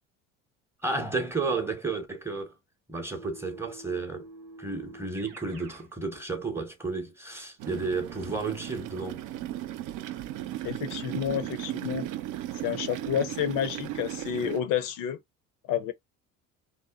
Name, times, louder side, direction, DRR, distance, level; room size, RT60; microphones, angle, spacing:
voice 1, 0.8-2.5 2.9-4.3 4.6-9.2, right 3 dB, 5° right, 0.7 m, -32 dB
Keyboard (musical), 3.1-5.9, right 2 dB, 85° right, 0.9 m, -48 dB
sound 1, 7.6-14.6, right 13 dB, 55° right, 0.5 m, -36 dB
voice 2, 10.6-12.1 12.6-15.2 15.7-15.9, left 9 dB, 55° left, 0.5 m, -30 dB
2.7 x 2.0 x 2.3 m
hypercardioid pair, 65°, 39 cm